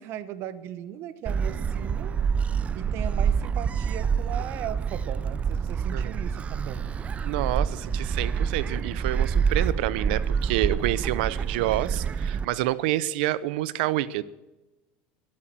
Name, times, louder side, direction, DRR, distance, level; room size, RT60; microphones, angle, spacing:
voice 1, 0.0-2.1 2.7-7.0, right 11 dB, 50° right, 15 dB, 0.9 m, -37 dB
Gull seagull, 1.3-12.5, right 6 dB, 25° right, 0.5 m, -27 dB
voice 2, 7.2-14.2, right 15 dB, 75° right, 19 dB, 0.6 m, -28 dB
13.5 x 8.7 x 7.6 m, 1.1 s
supercardioid pair, 125°, 5 cm